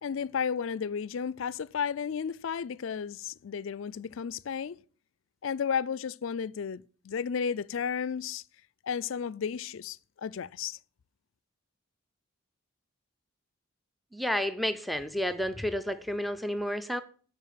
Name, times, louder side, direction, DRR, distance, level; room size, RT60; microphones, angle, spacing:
voice 1, 0.0-4.8 5.4-8.4 8.8-10.8, left 7 dB, 65° left, 0.4 m, -33 dB
voice 2, 14.1-17.0, equal, ahead, 0.5 m, -31 dB
12.0 x 4.7 x 7.5 m
head